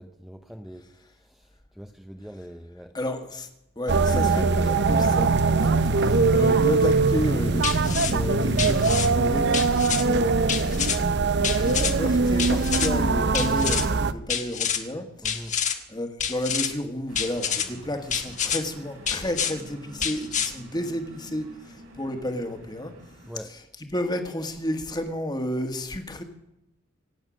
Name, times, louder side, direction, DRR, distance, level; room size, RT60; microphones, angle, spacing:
voice 1, 0.0-3.0 15.2-15.6 23.3-23.5, equal, ahead, 4 dB, 0.8 m, -43 dB
voice 2, 2.9-3.5 3.8-9.6 10.0-10.4 11.4-22.9 23.5-23.6 23.9-26.2, left 1 dB, 20° left, 6 dB, 1.7 m, -31 dB
sound 1, 3.9-14.1, right 4 dB, 55° right, 0.7 m, -22 dB
sound 2, 7.6-8.1 8.6-9.1 9.5-10.0 10.5-11.0 11.4-11.9 12.4-12.9 13.3-13.8 14.3-14.8 15.2-15.8 16.2-16.7 17.1-17.7 18.1-18.6 19.1-19.5 20.0-20.5, left 8 dB, 35° left, 1.5 m, -27 dB
sound 3, 17.1-23.3, right 1 dB, 75° right, 3.8 m, -48 dB
26.0 x 8.8 x 6.3 m, 0.89 s
head